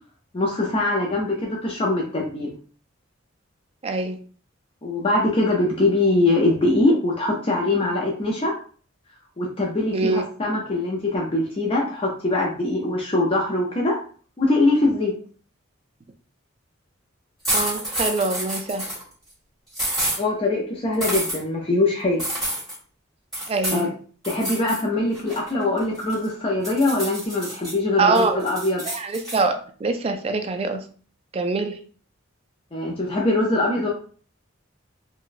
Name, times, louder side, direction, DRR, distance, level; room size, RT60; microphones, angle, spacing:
voice 1, 0.3-2.5 4.8-8.5 9.4-14.0 14.4-15.1 20.2-22.2 23.7-23.9 24.3-28.8 32.7-33.9, left 2 dB, 30° left, -2 dB, 0.5 m, -22 dB
voice 2, 3.8-4.2 9.9-10.2 17.5-18.9 23.5-23.9 28.0-28.4 28.9-30.9 31.3-31.8, right 3 dB, 30° right, 7 dB, 0.3 m, -24 dB
sound 1, 17.4-19.0 19.7-20.2 21.0-21.4 22.2-22.8 23.3-23.8 24.2-24.8 25.1-26.3 26.6-27.7 28.1-29.4, right 1 dB, ahead, 1.6 m, -28 dB
3.9 x 2.2 x 2.5 m, 0.43 s
head